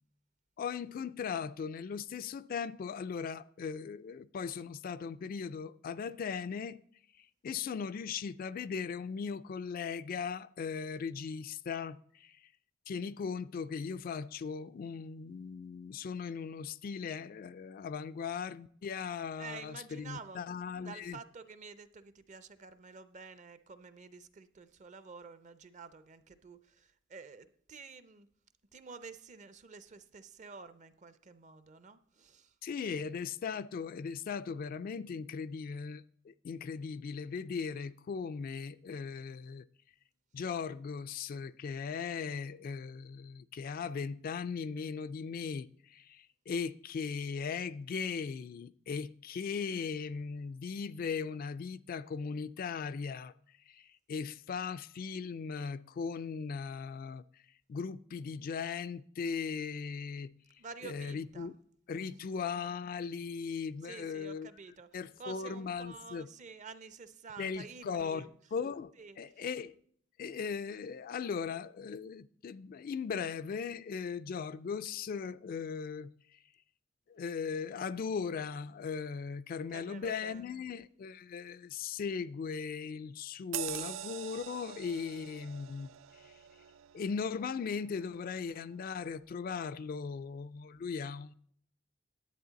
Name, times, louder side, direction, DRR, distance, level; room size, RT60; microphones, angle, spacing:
voice 1, 0.6-6.8 7.4-12.5 12.9-21.2 32.6-39.7 40.3-53.3 53.7-57.2 57.7-60.3 60.8-61.5 61.9-64.5 64.9-66.3 67.4-68.3 68.5-69.8 70.2-76.4 77.1-85.9 86.2-86.3 86.9-91.3, left 6 dB, 45° left, 0.3 m, -38 dB
voice 2, 19.4-20.4 20.8-28.3 28.7-32.5 60.6-61.5 62.1-62.3 63.8-68.3 69.0-69.4 79.7-80.6, right 4 dB, 40° right, 0.6 m, -50 dB
sound 1, 83.5-88.5 88.9-89.1, right 12 dB, 85° right, 0.3 m, -44 dB
10.5 x 8.5 x 4.0 m
head